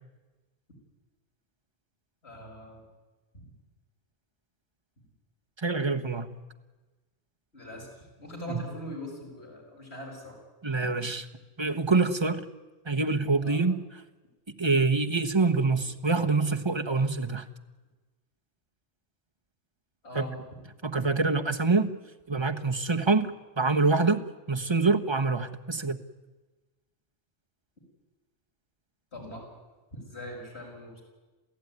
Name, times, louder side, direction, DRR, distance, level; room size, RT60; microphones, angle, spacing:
voice 1, 2.2-2.8 3.3-3.4 7.5-10.4 13.4-13.6 20.0-20.4 29.1-29.5 29.9-31.0, equal, 65° left, 0 dB, 6.8 m, -41 dB
voice 2, 5.6-6.3 10.6-11.3 11.6-12.4 12.8-13.8 14.6-17.5 20.1-20.2 20.8-21.9 22.3-23.3 23.6-24.2 24.5-26.0, right 3 dB, 25° right, 5 dB, 1.3 m, -25 dB
28.0 x 16.0 x 9.6 m, 1.2 s
omnidirectional pair, 1.2 m